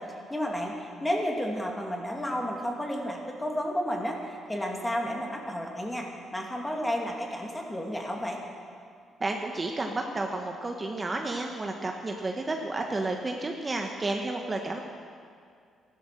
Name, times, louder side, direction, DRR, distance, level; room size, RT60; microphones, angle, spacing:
voice 1, 0.0-8.4, equal, 10° left, 1 dB, 2.6 m, -32 dB
voice 2, 9.2-14.8, right 2 dB, 25° right, 2 dB, 1.2 m, -31 dB
14.5 x 12.0 x 6.8 m, 2.3 s
cardioid pair, 90°, 0 cm